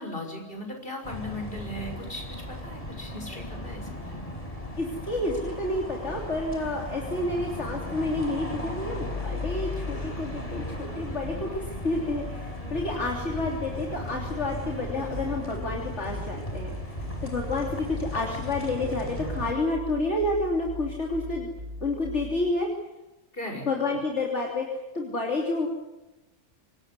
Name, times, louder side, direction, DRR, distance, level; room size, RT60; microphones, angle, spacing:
voice 1, 0.0-4.3 23.3-23.7, left 1 dB, 45° left, 3 dB, 6.3 m, -38 dB
sound 1, 1.0-19.5, left 1 dB, 25° left, 5.2 m, -36 dB
voice 2, 4.8-21.5 21.8-22.7 23.7-25.7, left 2 dB, 60° left, 0 dB, 3.5 m, -30 dB
sound 2, 15.1-22.5, left 1 dB, 50° right, 3.8 m, -40 dB
26.5 x 19.5 x 9.7 m, 1.0 s
omnidirectional pair, 1.3 m